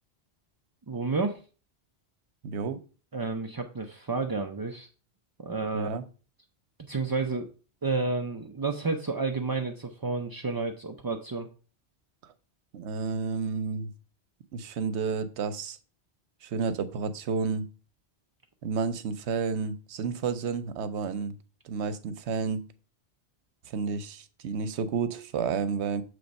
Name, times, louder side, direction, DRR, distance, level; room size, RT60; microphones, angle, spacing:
voice 1, 0.9-1.4 3.1-4.9 5.4-6.0 6.8-7.5 7.8-11.5, right 3 dB, 35° right, 3 dB, 0.3 m, -30 dB
voice 2, 2.4-2.8 5.7-6.0 12.7-13.9 14.5-15.8 16.4-17.7 18.6-21.3 21.6-22.6 23.7-26.0, right 5 dB, 80° right, 12 dB, 1.0 m, -31 dB
7.0 x 3.3 x 5.2 m, 0.36 s
omnidirectional pair, 1.1 m